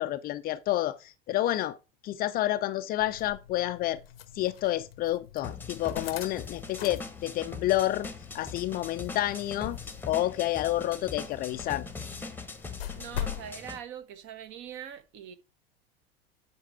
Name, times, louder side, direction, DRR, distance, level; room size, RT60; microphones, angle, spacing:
voice 1, 0.0-1.8 2.0-4.0 4.3-8.1 8.3-9.8 10.0-11.9, left 14 dB, 30° left, 0.5 m, -29 dB
sound 1, 3.0-13.5, left 11 dB, 70° left, 0.8 m, -43 dB
sound 2, 5.4-13.8, left 4 dB, 5° left, 1.1 m, -41 dB
voice 2, 12.9-15.3, right 9 dB, 40° right, 1.1 m, -42 dB
9.6 x 4.6 x 4.6 m
figure-of-eight pair, 80°, 31 cm